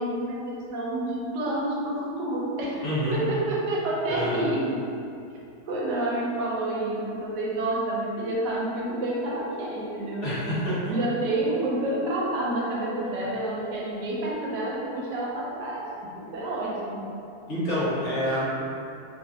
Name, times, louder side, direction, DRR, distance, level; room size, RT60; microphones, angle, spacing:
voice 1, 0.0-2.8 3.1-4.6 5.7-10.5 10.9-15.8 16.1-17.0, right 1 dB, 85° right, -4 dB, 1.2 m, -29 dB
voice 2, 2.8-3.2 4.1-4.5 10.2-10.9 13.2-13.3 17.5-18.5, equal, 50° left, -10 dB, 1.1 m, -27 dB
3.0 x 2.3 x 2.7 m, 2.7 s
omnidirectional pair, 1.8 m